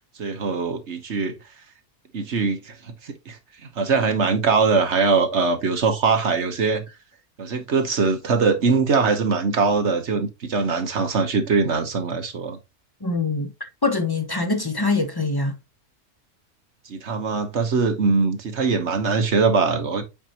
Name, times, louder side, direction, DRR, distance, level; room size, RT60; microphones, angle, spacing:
voice 1, 0.2-1.4 2.1-3.4 3.8-6.8 7.4-12.6 16.9-20.0, right 4 dB, 50° right, 1.3 m, -22 dB
voice 2, 13.0-15.6, left 3 dB, 20° left, 0.6 m, -24 dB
8.0 x 4.7 x 2.9 m
omnidirectional pair, 1.6 m